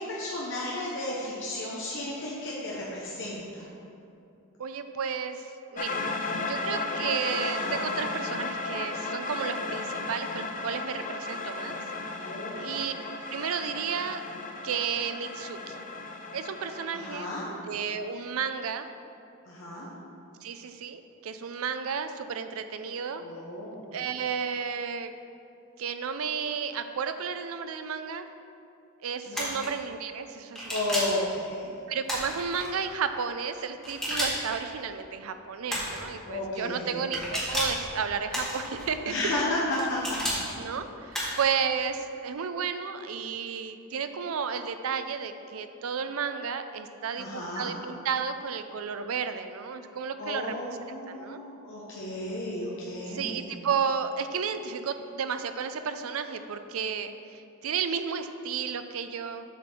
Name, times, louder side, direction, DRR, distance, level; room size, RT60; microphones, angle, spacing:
voice 1, 0.0-3.6 7.4-7.9 12.1-12.6 16.9-17.5 19.5-19.9 23.2-23.8 29.3-29.5 30.7-31.7 36.2-37.1 39.1-40.2 47.2-47.7 50.2-53.4, left 1 dB, 60° left, -5 dB, 1.0 m, -33 dB
voice 2, 4.6-5.5 5.7-6.1 6.4-11.7 12.6-12.9 13.3-14.2 14.6-15.8 16.3-17.3 17.6-18.9 20.4-23.2 23.9-25.1 25.8-28.3 29.0-31.0 31.9-39.3 40.6-50.5 51.1-51.4 53.1-59.4, right 6 dB, 70° right, 9 dB, 0.5 m, -32 dB
sound 1, 5.8-17.2, left 3 dB, 40° left, 0.7 m, -34 dB
sound 2, 29.3-29.7 30.5-31.2 32.0-32.7 33.8-34.6 35.7-36.1 37.1-37.8 38.3-38.9 39.7-40.4 41.1-41.5, equal, ahead, 1.9 m, -31 dB
8.0 x 4.2 x 6.3 m, 2.6 s
head